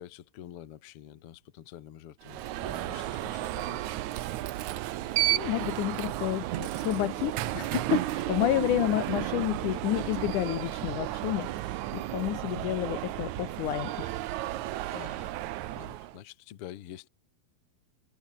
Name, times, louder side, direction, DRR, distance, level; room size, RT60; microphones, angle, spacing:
voice 1, 0.0-3.8 14.9-17.1, left 11 dB, 60° left, 1.5 m, -47 dB
Alarm, 2.2-16.2, right 15 dB, 75° right, 1.7 m, -33 dB
Thunder, 2.4-13.2, left 1 dB, 5° left, 3.9 m, -61 dB
voice 2, 5.3-14.2, left 15 dB, 80° left, 1.8 m, -30 dB
omnidirectional pair, 4.5 m